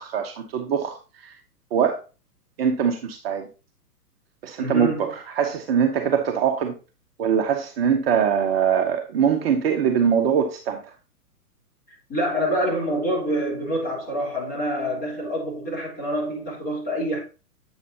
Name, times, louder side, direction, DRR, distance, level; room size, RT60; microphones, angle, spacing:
voice 1, 0.0-1.4 1.7-2.0 2.6-3.5 4.4-6.7 7.2-10.8, right 7 dB, 40° right, 0.9 m, -22 dB
voice 2, 4.6-5.0 12.1-17.2, equal, 20° left, 3.5 m, -26 dB
8.0 x 7.1 x 2.7 m
figure-of-eight pair, 115°, 48 cm